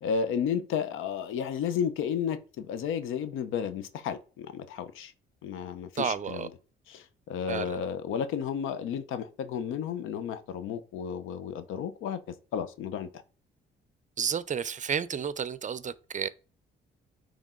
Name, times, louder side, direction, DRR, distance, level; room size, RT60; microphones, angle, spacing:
voice 1, 0.0-5.1 5.4-6.5 6.9-12.2 12.5-13.1, left 7 dB, 90° left, 0.8 m, -32 dB
voice 2, 6.0-6.5 7.5-7.8 14.2-16.3, right 7 dB, 40° right, 0.6 m, -31 dB
9.2 x 3.4 x 3.8 m
cardioid pair, 90°, 20 cm